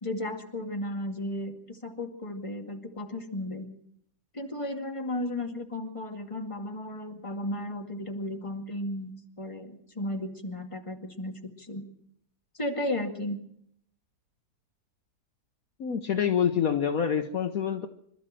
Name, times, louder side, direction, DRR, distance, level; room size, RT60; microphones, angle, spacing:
voice 1, 0.0-3.7 4.3-11.9 12.5-13.4, left 1 dB, 20° left, 2 dB, 2.3 m, -34 dB
voice 2, 15.8-17.9, left 8 dB, 60° left, 6 dB, 1.4 m, -26 dB
26.0 x 13.0 x 7.6 m, 0.71 s
omnidirectional pair, 1.7 m